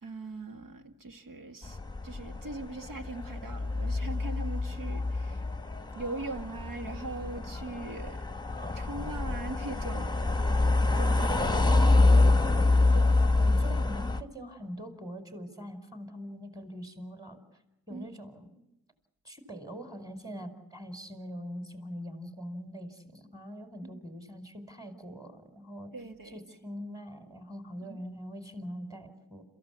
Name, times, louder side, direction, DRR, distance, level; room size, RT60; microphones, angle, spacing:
voice 1, 0.0-5.4 5.9-8.2 8.7-10.7 11.0-12.4 17.9-18.2 25.9-26.4 27.9-28.0, right 2 dB, 70° right, 2.4 m, -41 dB
sound 1, 1.6-14.2, left 2 dB, 10° left, 1.2 m, -26 dB
voice 2, 12.9-17.6 17.9-18.5 19.2-25.9 26.3-29.4, equal, 10° right, 5.0 m, -43 dB
27.5 x 15.0 x 8.3 m
cardioid pair, 70°, 34 cm